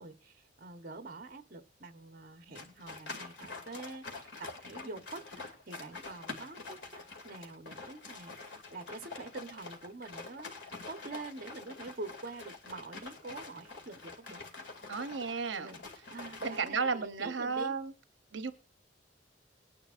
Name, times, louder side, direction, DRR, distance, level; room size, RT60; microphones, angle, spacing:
voice 1, 0.0-14.4 15.5-15.8 16.1-17.7, right 3 dB, 50° right, 1.1 m, -46 dB
sound 1, 2.5-16.7, left 3 dB, 75° left, 2.5 m, -46 dB
voice 2, 14.9-15.7 16.4-17.9 18.3-18.5, right 5 dB, 75° right, 0.8 m, -33 dB
21.0 x 10.0 x 2.5 m
head